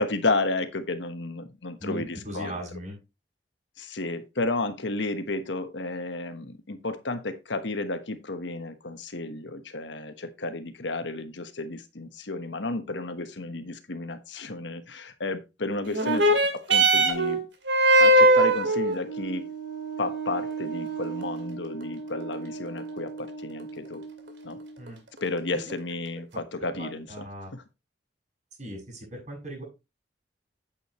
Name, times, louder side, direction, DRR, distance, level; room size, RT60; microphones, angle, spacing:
voice 1, 0.0-2.6 3.8-17.4 18.0-19.5 20.0-24.0 24.4-24.6 25.2-27.2 27.5-27.6, left 2 dB, 90° left, 1.3 m, -32 dB
voice 2, 1.8-2.9 24.8-25.0 25.5-25.7 26.7-27.5 28.6-29.6, right 1 dB, 45° right, 6.4 m, -38 dB
sound 1, 15.9-24.9 25.7-25.8, right 1 dB, 85° right, 2.4 m, -24 dB
8.6 x 8.5 x 3.1 m
head